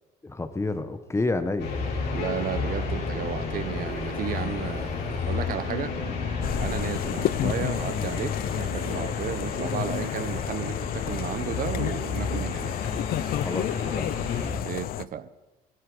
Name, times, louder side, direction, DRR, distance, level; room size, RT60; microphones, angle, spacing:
voice 1, 0.2-1.7 13.4-14.1, left 2 dB, 15° left, 10 dB, 1.3 m, -29 dB
sound 1, 1.6-14.5, left 4 dB, 85° left, 4.3 m, -31 dB
voice 2, 2.1-5.0 5.3-6.0 6.6-12.7 14.6-15.3, right 9 dB, 55° right, 15 dB, 1.0 m, -33 dB
sound 2, 6.4-15.1, left 13 dB, 60° left, 0.5 m, -31 dB
17.0 x 16.5 x 5.1 m, 1.1 s
cardioid pair, 110°, 17 cm